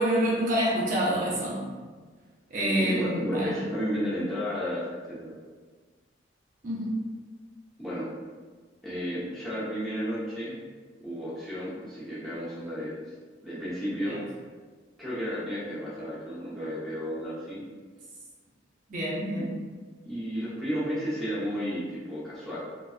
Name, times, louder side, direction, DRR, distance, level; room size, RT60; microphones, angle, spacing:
voice 1, 0.0-1.7 2.5-3.6 6.6-7.0 14.1-14.2 18.9-19.6, right 1 dB, 45° right, -6 dB, 0.7 m, -27 dB
voice 2, 2.6-4.8 5.1-5.3 7.8-8.1 8.8-10.6 11.0-13.0 13.4-14.2 15.0-17.6 19.3-19.4 20.0-22.6, equal, ahead, -11 dB, 1.0 m, -32 dB
4.7 x 2.4 x 2.4 m, 1.5 s
head